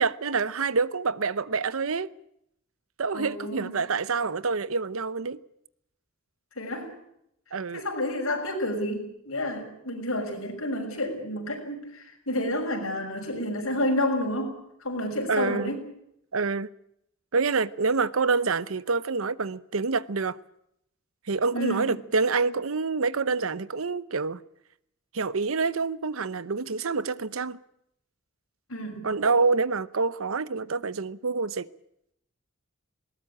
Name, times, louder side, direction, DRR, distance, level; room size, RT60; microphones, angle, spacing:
voice 1, 0.0-2.1 3.0-5.4 7.5-7.8 15.3-15.8 16.3-16.7 17.3-20.4 21.3-24.4 25.1-27.6 29.0-31.7, right 4 dB, 85° right, 0.8 m, -27 dB
voice 2, 3.1-3.7 6.6-6.9 7.7-14.5 14.8-15.8 21.5-22.0 28.7-29.0, left 1 dB, 85° left, 6.4 m, -30 dB
20.5 x 18.5 x 8.8 m
head